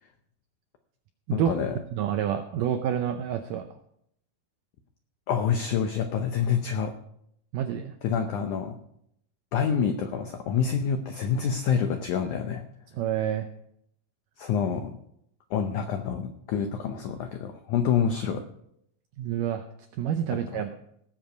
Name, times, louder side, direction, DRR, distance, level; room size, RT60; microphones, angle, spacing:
voice 1, 1.3-1.8 5.3-6.9 8.0-8.8 9.5-12.6 14.4-14.9 15.5-18.4 20.5-20.6, left 7 dB, 85° left, 7 dB, 1.7 m, -27 dB
voice 2, 1.9-3.7 7.5-7.9 13.0-13.5 19.2-19.6 20.0-20.7, right 10 dB, 85° right, 7 dB, 1.8 m, -28 dB
18.0 x 7.4 x 5.2 m, 0.73 s
omnidirectional pair, 4.6 m